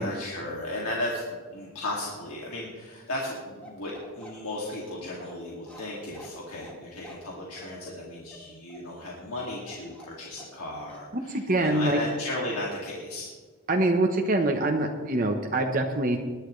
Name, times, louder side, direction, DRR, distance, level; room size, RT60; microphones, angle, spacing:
voice 1, 0.0-13.3, left 1 dB, 90° left, -4 dB, 2.4 m, -35 dB
Bark, 3.6-10.6 10.9-11.1, right 1 dB, 5° left, 2.3 m, -49 dB
voice 2, 11.3-12.0 13.7-16.2, right 2 dB, 40° right, 2 dB, 1.0 m, -24 dB
21.0 x 11.0 x 3.2 m, 1.5 s
head